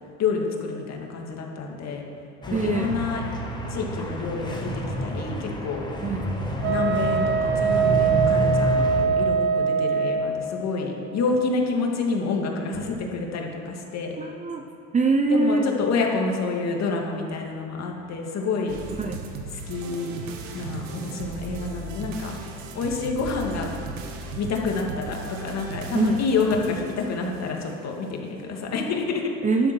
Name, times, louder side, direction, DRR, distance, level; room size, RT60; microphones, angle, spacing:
voice 1, 0.2-2.0 2.5-3.2 3.7-5.8 6.6-14.2 15.3-18.8 19.7-20.2 20.5-22.3 22.7-23.7 24.4-29.3, left 4 dB, 45° left, 1 dB, 2.5 m, -28 dB
sound 1, 2.4-9.0, equal, 10° left, 2.1 m, -29 dB
voice 2, 2.5-2.9 6.0-6.3 14.2-14.6 14.9-15.7 19.0-19.1 25.9-26.2 29.4-29.7, right 3 dB, 20° right, 4 dB, 0.8 m, -23 dB
Wind instrument woodwind instrument, 6.6-10.3, right 6 dB, 60° right, 1.8 m, -22 dB
sound 2, 18.7-27.8, right 4 dB, 85° right, 1.7 m, -37 dB
12.0 x 11.5 x 6.2 m, 2.9 s
supercardioid pair, 105°, 38 cm